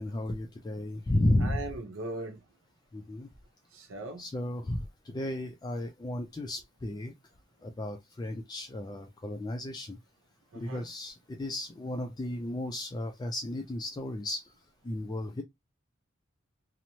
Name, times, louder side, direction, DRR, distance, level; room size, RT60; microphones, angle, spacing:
voice 1, 0.0-1.7 2.9-3.3 4.2-7.1 7.6-10.0 10.5-14.5 14.8-15.4, left 1 dB, 20° left, 0.3 m, -33 dB
voice 2, 1.4-2.4 3.7-4.2 10.5-10.9, right 2 dB, 85° right, 0.7 m, -39 dB
2.9 x 2.0 x 2.7 m
head